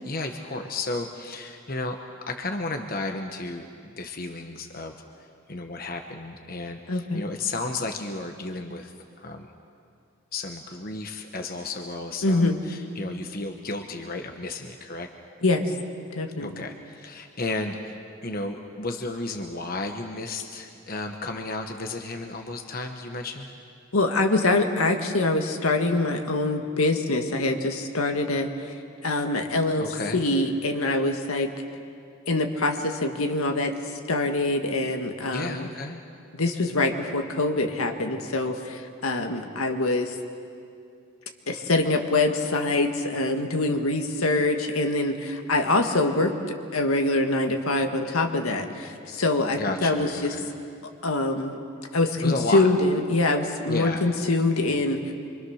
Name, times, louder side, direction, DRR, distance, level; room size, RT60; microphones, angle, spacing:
voice 1, 0.0-2.0 2.3-3.7 3.9-4.9 5.5-9.5 10.3-15.1 16.4-23.5 29.8-30.2 35.3-36.0 49.6-50.5 52.2-52.7 53.7-54.1, left 2 dB, 40° left, 5 dB, 1.1 m, -33 dB
voice 2, 6.9-7.2 12.2-12.6 15.4-15.7 16.1-16.6 23.9-28.5 29.0-29.9 30.1-31.5 32.3-33.7 34.1-35.7 36.3-40.2 41.5-46.3 46.7-50.3 51.0-51.6 51.9-55.1, left 2 dB, 80° left, 4 dB, 1.8 m, -24 dB
26.5 x 24.5 x 6.5 m, 2.4 s
head